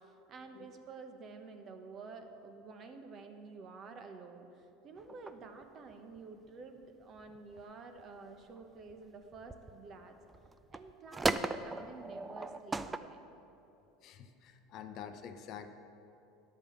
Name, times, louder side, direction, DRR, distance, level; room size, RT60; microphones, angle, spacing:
voice 1, 0.3-10.2 10.7-13.3, right 4 dB, 40° right, 6 dB, 1.0 m, -50 dB
sound 1, 5.0-5.6 5.9-6.2 7.2-7.3 7.5-7.6 8.0-8.1 8.5-8.9 9.3-9.7 10.3-13.0, right 3 dB, 15° right, 0.4 m, -36 dB
voice 2, 14.0-15.7, left 8 dB, 50° left, 9 dB, 0.7 m, -47 dB
10.5 x 5.2 x 7.2 m, 2.8 s
supercardioid pair, 100°, 0 cm